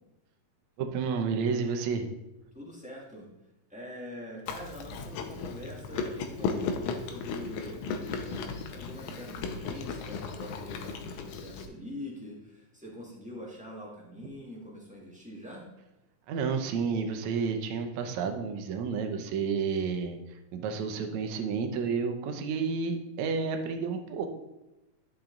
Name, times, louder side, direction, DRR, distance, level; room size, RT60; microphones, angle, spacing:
voice 1, 0.8-2.1 16.3-24.3, right 5 dB, 70° right, 4 dB, 2.0 m, -31 dB
voice 2, 2.5-3.3 3.7-15.7, left 1 dB, 5° right, -4 dB, 0.6 m, -44 dB
Chewing mastication, 4.5-11.7, left 5 dB, 75° left, 2.1 m, -36 dB
11.0 x 5.9 x 3.9 m, 0.96 s
omnidirectional pair, 3.7 m